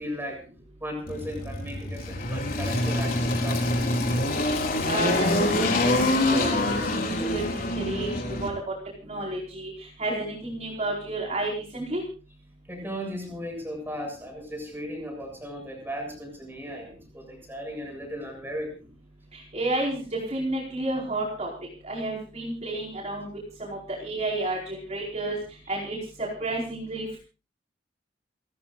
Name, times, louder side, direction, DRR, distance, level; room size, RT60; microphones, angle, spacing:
voice 1, 0.0-4.5 12.7-18.7, equal, 10° right, 3 dB, 7.3 m, -37 dB
Engine, 1.1-8.5, left 1 dB, 50° left, 4.3 m, -25 dB
voice 2, 4.9-7.4 7.9-8.1 8.4-8.7 9.0-12.0 19.3-20.0 20.3-21.5 21.8-23.3 23.6-25.4 25.7-26.0 26.4-27.2, right 2 dB, 40° right, -2 dB, 4.7 m, -31 dB
29.5 x 14.5 x 2.5 m, 0.35 s
head